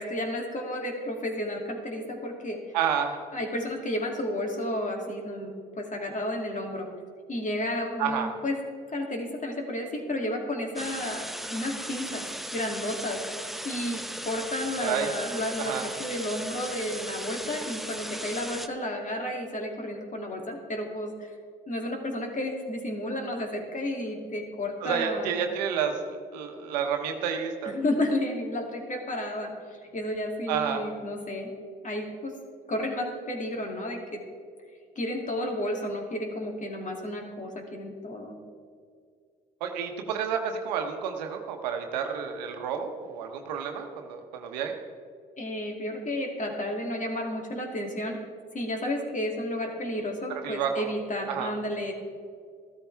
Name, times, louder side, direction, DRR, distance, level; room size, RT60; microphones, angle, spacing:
voice 1, 0.0-2.8 3.3-6.9 7.3-8.6 8.9-12.3 12.5-13.2 13.6-21.3 21.7-25.4 27.6-31.5 31.8-32.3 32.7-34.2 35.0-38.3 45.4-48.2 48.5-51.9, left 1 dB, 35° left, 2 dB, 2.7 m, -32 dB
voice 2, 2.7-3.2 8.0-8.3 14.8-15.1 15.6-15.9 24.8-27.7 30.5-30.8 39.6-44.8 50.4-50.9 51.3-51.5, right 7 dB, 90° right, 5 dB, 1.0 m, -30 dB
sound 1, 10.8-18.7, equal, ahead, 0.9 m, -37 dB
14.5 x 13.0 x 3.4 m, 2.2 s
hypercardioid pair, 55°, 21 cm